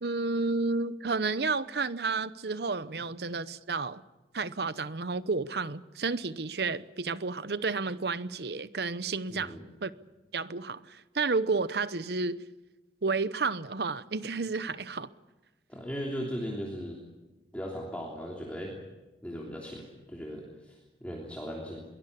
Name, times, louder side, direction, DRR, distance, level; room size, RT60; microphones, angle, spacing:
voice 1, 0.0-4.0 4.3-9.5 9.8-9.9 10.3-12.4 13.0-15.1, right 4 dB, 65° right, 0.8 m, -31 dB
voice 2, 9.3-9.6 15.7-17.0 17.5-18.7 19.2-21.8, equal, 10° left, 3.2 m, -38 dB
22.5 x 19.5 x 8.5 m
head